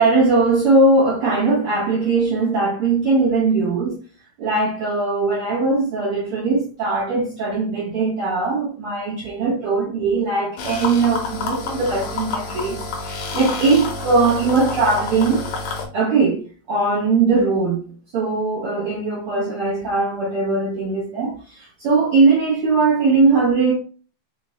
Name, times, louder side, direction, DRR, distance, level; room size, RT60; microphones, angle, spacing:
voice 1, 0.0-4.0 4.4-15.4 15.9-16.4 16.7-17.8 18.1-23.7, right 3 dB, 60° right, 1.5 m, -20 dB
sound 1, 10.6-15.9, left 4 dB, 70° left, 2.0 m, -28 dB
5.2 x 2.4 x 3.0 m
omnidirectional pair, 3.7 m